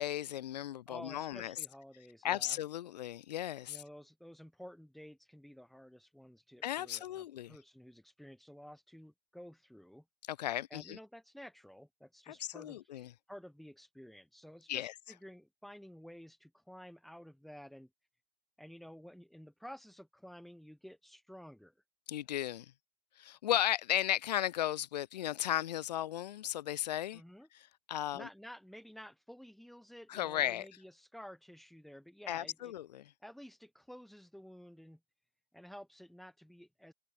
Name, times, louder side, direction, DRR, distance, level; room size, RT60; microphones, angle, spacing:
voice 1, 0.0-1.6 2.2-3.8 6.6-7.5 10.3-11.0 12.3-13.1 14.7-14.9 22.1-22.7 23.2-27.2 27.5-28.3 30.1-30.7 32.3-33.1, left 12 dB, 85° left, 0.5 m, -35 dB
voice 2, 0.9-2.6 3.7-10.0 10.7-12.8 13.3-17.9 18.6-21.7 27.1-27.5 28.1-32.7 33.2-35.0 35.5-36.9, equal, ahead, 3.2 m, -52 dB
hypercardioid pair, 135°, 21 cm